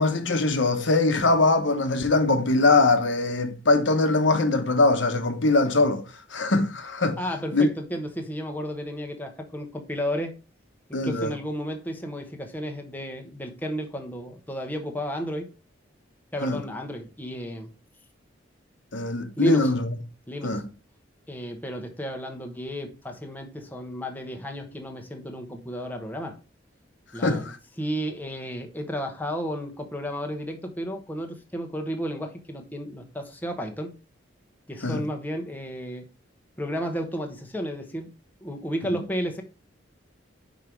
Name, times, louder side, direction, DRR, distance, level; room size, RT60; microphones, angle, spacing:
voice 1, 0.0-6.0 6.3-7.2 7.5-7.7 10.9-11.3 16.4-16.6 18.9-19.9 20.4-20.6 27.2-27.5 34.8-35.0 38.8-39.0, left 3 dB, 80° left, 1.1 m, -22 dB
voice 2, 7.2-10.3 10.9-15.5 16.3-17.7 19.4-19.7 20.3-20.6 21.3-26.4 27.1-27.5 27.8-33.9 34.7-36.1 36.6-38.1 38.4-39.4, equal, 10° left, 1.0 m, -32 dB
5.6 x 5.1 x 4.5 m
head